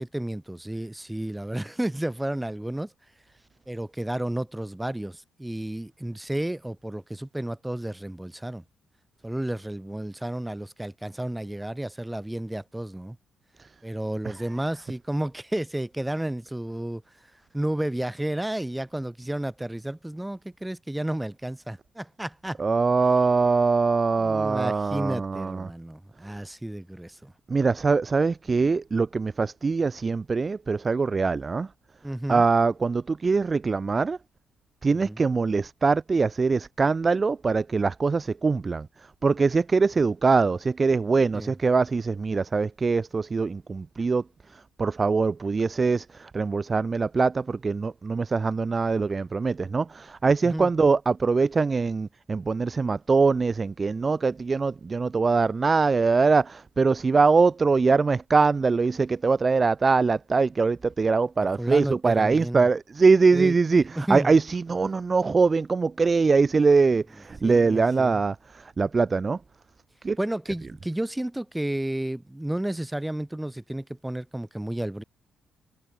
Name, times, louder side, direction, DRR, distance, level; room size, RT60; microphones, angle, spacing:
voice 1, 0.0-2.9 3.7-8.6 9.2-13.2 13.8-17.0 17.5-22.6 24.2-27.3 32.0-32.4 34.9-35.2 41.3-41.5 50.4-50.7 61.6-62.7 63.3-63.6 64.0-64.3 67.4-68.2 70.2-75.0, right 1 dB, 5° right, 4.7 m, -32 dB
voice 2, 22.6-25.7 27.5-31.7 32.3-34.2 34.8-38.9 39.2-44.2 44.8-63.8 64.1-68.4 68.8-69.4 70.0-70.2, right 4 dB, 30° right, 0.4 m, -22 dB
cardioid pair, 90°, 0 cm